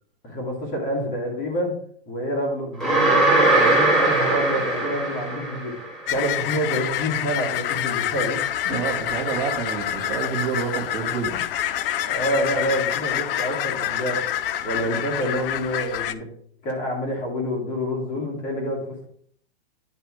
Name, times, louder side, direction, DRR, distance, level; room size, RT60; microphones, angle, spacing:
voice 1, 0.2-1.7 2.1-5.7 6.0-8.4 12.0-14.2 14.6-16.3 16.6-19.1, equal, 25° left, -1 dB, 2.2 m, -27 dB
sound 1, 2.8-5.9, right 2 dB, ahead, 2.0 m, -20 dB
sound 2, 6.1-16.1, left 11 dB, 60° left, 0.5 m, -27 dB
voice 2, 8.6-11.4, right 6 dB, 35° right, -1 dB, 1.7 m, -28 dB
10.0 x 5.5 x 3.2 m, 0.63 s
hypercardioid pair, 150°, 32 cm